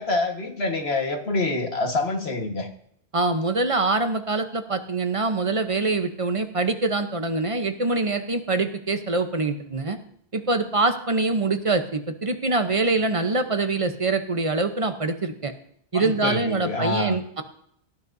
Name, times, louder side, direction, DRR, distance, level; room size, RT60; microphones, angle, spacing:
voice 1, 0.0-2.7 15.9-17.2, left 2 dB, 75° left, 4 dB, 1.8 m, -26 dB
voice 2, 3.1-10.0 10.3-15.5 15.9-17.4, right 3 dB, 35° right, 7 dB, 0.9 m, -24 dB
17.5 x 12.0 x 2.7 m, 0.68 s
omnidirectional pair, 1.1 m